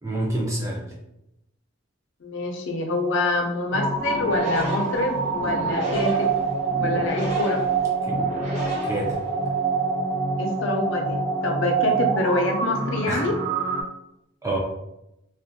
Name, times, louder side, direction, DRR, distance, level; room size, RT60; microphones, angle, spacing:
voice 1, 0.0-1.0 8.0-8.2 8.8-9.2 13.1-13.3 14.4-14.6, right 1 dB, 15° right, -2 dB, 0.4 m, -27 dB
voice 2, 2.2-6.3 6.8-7.6 10.4-13.3, left 2 dB, 70° left, 2 dB, 0.5 m, -26 dB
sound 1, 3.7-13.8, right 4 dB, 90° right, 0.7 m, -26 dB
sound 2, 4.0-9.6, equal, 35° right, 0.8 m, -34 dB
2.4 x 2.1 x 2.6 m, 0.86 s
head